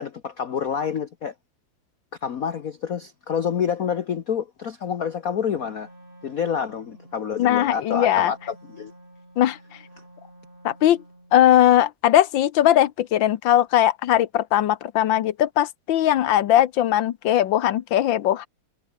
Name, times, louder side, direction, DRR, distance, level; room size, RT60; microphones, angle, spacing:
voice 1, 0.0-1.3 2.2-5.9 6.2-8.9, left 7 dB, 50° left, 1.4 m, -28 dB
Wind instrument woodwind instrument, 5.5-11.4, right 1 dB, 25° right, 8.0 m, -49 dB
voice 2, 7.4-8.3 9.4-9.6 10.6-11.0 11.3-18.5, left 12 dB, 70° left, 1.5 m, -19 dB
omnidirectional pair, 2.2 m